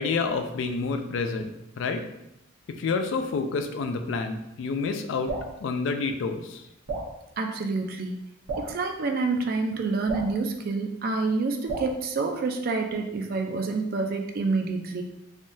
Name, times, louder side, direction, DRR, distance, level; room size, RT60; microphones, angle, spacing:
voice 1, 0.0-1.5 1.8-2.0 2.8-5.3 5.6-6.6, left 4 dB, 65° left, 6 dB, 0.3 m, -28 dB
Drip, 5.3-5.5 6.9-7.1 8.5-8.7 10.1-10.3 11.7-11.9, right 3 dB, 85° right, 0.8 m, -32 dB
voice 2, 7.4-8.1 8.6-15.0, right 3 dB, 45° right, 4 dB, 0.3 m, -28 dB
3.5 x 2.2 x 2.6 m, 0.85 s
head